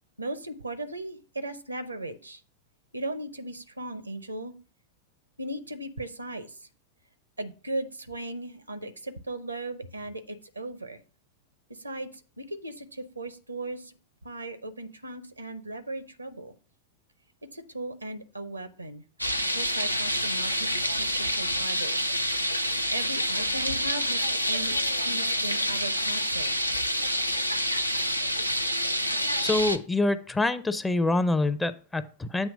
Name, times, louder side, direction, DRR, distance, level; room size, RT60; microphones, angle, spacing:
voice 1, 0.2-2.4 2.9-4.5 5.4-6.7 7.4-11.0 11.7-12.1 12.4-14.0 14.2-16.5 17.5-19.0 19.5-22.0 22.9-26.6, right 2 dB, 85° right, 0.6 m, -37 dB
sound 1, 19.2-29.8, equal, 90° left, 0.4 m, -27 dB
voice 2, 29.4-32.5, left 2 dB, 10° left, 0.5 m, -26 dB
8.3 x 3.0 x 6.2 m
figure-of-eight pair, 90°, 0 cm